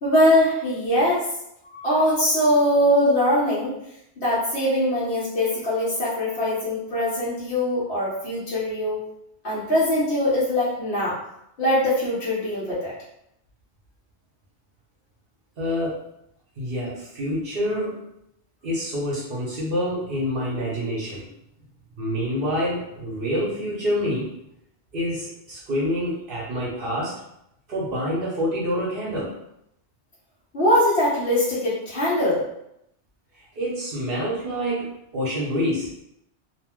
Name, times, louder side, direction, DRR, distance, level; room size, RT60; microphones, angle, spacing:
voice 1, 0.0-1.2 1.7-3.7 4.2-9.0 9.4-11.2 11.6-12.9 30.5-32.4, left 1 dB, 65° left, -10 dB, 1.1 m, -22 dB
voice 2, 15.6-16.0 16.6-18.0 18.6-21.3 22.0-24.3 24.9-27.2 27.7-29.4 33.3-35.9, equal, 60° right, -7 dB, 0.9 m, -27 dB
2.6 x 2.1 x 3.5 m, 0.79 s
omnidirectional pair, 1.1 m